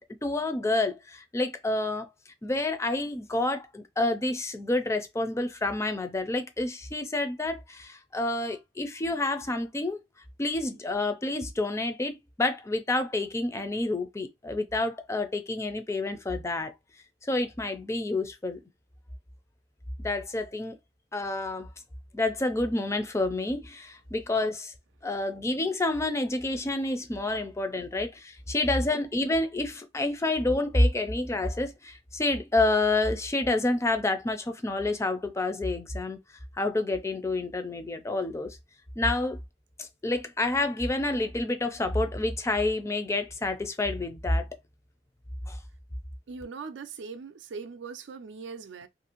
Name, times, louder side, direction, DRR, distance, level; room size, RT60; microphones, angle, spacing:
voice 1, 0.0-2.1 2.4-10.0 10.4-16.7 17.3-18.6 20.0-20.8 21.1-21.7 22.1-24.7 25.0-36.2 36.6-38.6 39.0-39.4 39.8-44.5 45.5-45.6, left 2 dB, 15° left, 0.4 m, -28 dB
voice 2, 46.3-48.9, right 5 dB, 75° right, 0.4 m, -40 dB
2.6 x 2.5 x 2.9 m
head